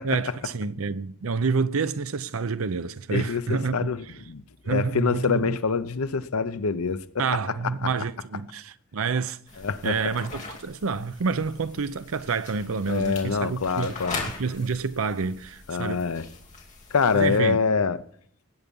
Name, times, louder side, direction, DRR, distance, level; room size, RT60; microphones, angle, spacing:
voice 1, 0.0-3.9 4.7-5.6 7.2-9.4 9.8-13.9 14.4-16.0 17.1-17.6, right 5 dB, 80° right, 0.6 m, -28 dB
voice 2, 3.1-7.3 9.6-9.9 12.9-14.3 15.7-16.3 16.9-18.0, left 5 dB, 90° left, 0.7 m, -25 dB
sound 1, 9.5-17.4, left 3 dB, 35° left, 2.6 m, -41 dB
18.5 x 8.3 x 5.4 m
head